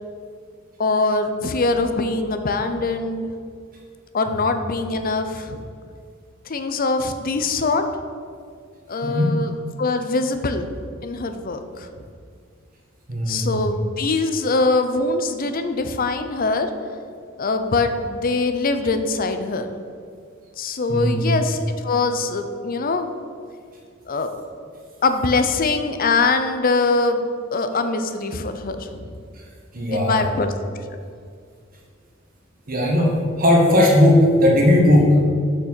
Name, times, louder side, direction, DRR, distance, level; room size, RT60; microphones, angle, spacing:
voice 1, 0.8-3.3 4.1-5.6 6.5-7.8 8.9-9.5 9.8-10.7 11.0-11.9 13.3-16.7 17.4-19.7 20.6-23.1 24.1-24.3 25.0-29.1 29.9-30.5, left 3 dB, 45° left, 8 dB, 0.6 m, -23 dB
voice 2, 9.0-9.3 13.1-13.6 20.9-21.3 29.3-29.5 29.7-30.3 32.7-35.2, left 1 dB, 45° right, -2 dB, 1.4 m, -17 dB
6.7 x 6.1 x 6.1 m, 2.2 s
head